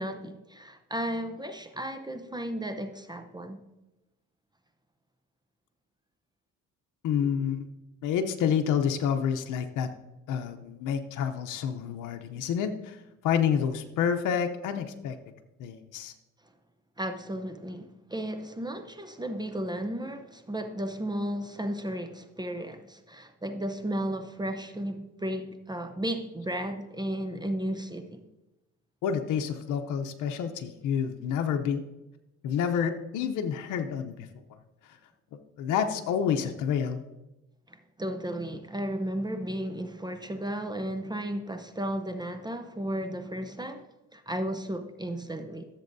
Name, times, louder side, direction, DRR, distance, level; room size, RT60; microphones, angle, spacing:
voice 1, 0.0-3.6 17.0-28.2 37.7-45.7, right 1 dB, 15° right, 0.7 m, -34 dB
voice 2, 7.0-7.7 8.0-9.9 10.3-15.2 15.6-16.1 29.0-31.8 32.4-34.3 35.6-37.0, left 8 dB, 90° left, 0.7 m, -28 dB
14.0 x 7.4 x 2.6 m
cardioid pair, 90°, 30 cm